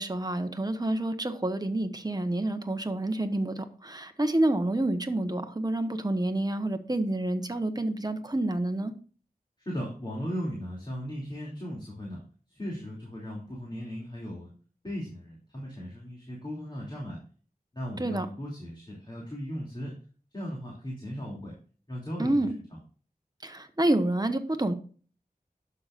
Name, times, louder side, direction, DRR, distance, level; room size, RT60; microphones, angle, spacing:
voice 1, 0.0-8.9 18.0-18.3 22.2-22.5 23.4-24.7, right 1 dB, 25° right, 1.1 m, -28 dB
voice 2, 9.7-12.2 12.5-14.5 14.8-17.2 17.7-19.9 20.3-21.5 21.9-22.3, equal, 30° left, 2.9 m, -37 dB
11.5 x 6.7 x 2.5 m
wide cardioid pair, 55°, 16 cm